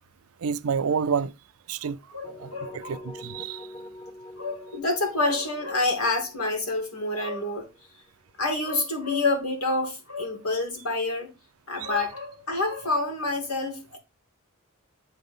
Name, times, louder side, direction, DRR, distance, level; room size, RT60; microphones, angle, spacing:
voice 1, 0.4-1.3 1.7-2.0 2.4-3.7 11.8-11.9, right 6 dB, 70° right, 0.5 m, -29 dB
voice 2, 2.1-3.0 4.4-7.7 8.4-11.3 11.7-14.0, left 2 dB, 80° left, 2.6 m, -28 dB
sound 1, 2.2-8.1, left 1 dB, 30° left, 1.6 m, -45 dB
8.7 x 3.9 x 3.6 m
head